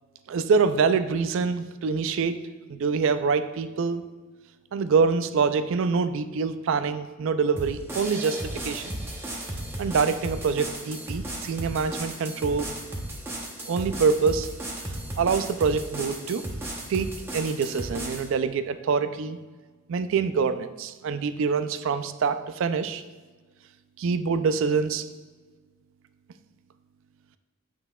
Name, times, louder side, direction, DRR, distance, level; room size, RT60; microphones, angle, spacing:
voice 1, 0.3-2.4 2.7-4.0 4.7-8.9 9.8-12.7 13.7-14.5 15.2-16.4 16.9-19.4 19.9-23.0 24.0-25.1, right 5 dB, 60° right, 11 dB, 0.3 m, -25 dB
sound 1, 7.6-18.3, right 1 dB, 10° right, 0.7 m, -35 dB
8.1 x 5.6 x 2.3 m, 1.3 s
head